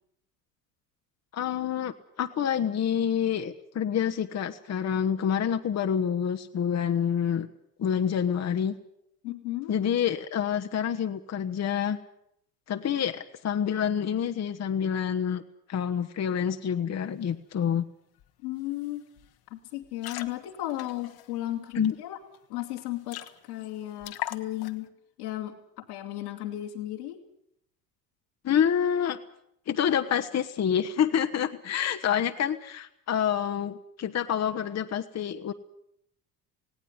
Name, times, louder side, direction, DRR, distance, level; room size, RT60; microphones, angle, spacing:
voice 1, 1.3-7.5 7.8-8.7 9.7-12.0 12.7-15.4 15.7-17.8 21.7-21.9 28.4-29.2 29.7-35.5, left 8 dB, 35° left, 7 dB, 1.3 m, -27 dB
voice 2, 9.2-9.7 18.4-19.0 19.5-22.2 22.5-24.9 25.2-27.2 31.7-31.8, left 15 dB, 80° left, -2 dB, 2.7 m, -35 dB
sound 1, 18.2-18.3 18.6-18.9 19.2-19.4 19.8-21.9 22.3-22.4 22.7-22.8 23.1-23.7 24.0-24.9, left 13 dB, 50° left, 1.5 m, -40 dB
19.0 x 17.0 x 9.6 m, 0.75 s
hypercardioid pair, 70°, 47 cm